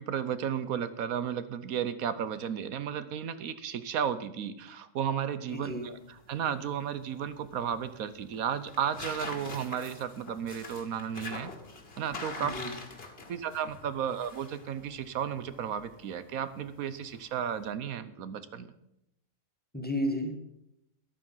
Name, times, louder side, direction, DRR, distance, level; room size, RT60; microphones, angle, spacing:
voice 1, 0.0-11.5 12.0-12.5 13.3-18.7, right 8 dB, 80° right, 13 dB, 1.3 m, -33 dB
sound 1, 5.5-17.7, left 3 dB, 45° left, 1.9 m, -46 dB
voice 2, 5.5-5.9 12.4-12.7 19.7-20.4, equal, 5° left, 4 dB, 1.6 m, -32 dB
13.5 x 10.5 x 5.6 m, 0.82 s
omnidirectional pair, 1.5 m